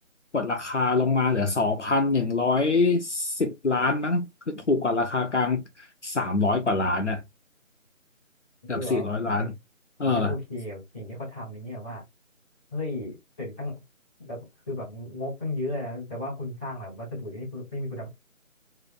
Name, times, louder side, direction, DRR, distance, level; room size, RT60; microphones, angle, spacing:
voice 1, 0.3-5.6 6.0-7.2 8.7-9.5 10.0-10.3, left 3 dB, 55° left, 0.9 m, -24 dB
voice 2, 8.6-9.5 10.0-12.0 12.7-13.8 14.2-18.1, left 1 dB, 10° left, 1.6 m, -35 dB
4.8 x 3.4 x 2.5 m
figure-of-eight pair, 170°, 41 cm